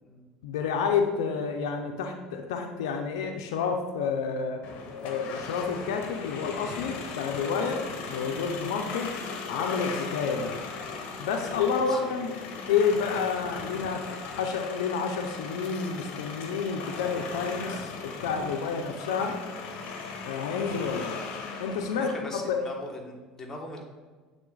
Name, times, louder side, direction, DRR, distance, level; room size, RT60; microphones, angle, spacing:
voice 1, 0.4-4.6 5.0-9.2 9.5-10.6 11.2-12.3 12.7-19.4 20.2-21.2 21.6-22.6, left 5 dB, 80° left, 4 dB, 0.6 m, -29 dB
sound 1, 4.6-22.2, left 4 dB, 60° left, 0.9 m, -38 dB
voice 2, 18.4-18.7 22.0-23.8, left 2 dB, 20° left, -1 dB, 1.5 m, -41 dB
8.2 x 3.5 x 3.9 m, 1.4 s
hypercardioid pair, 85°, 3 cm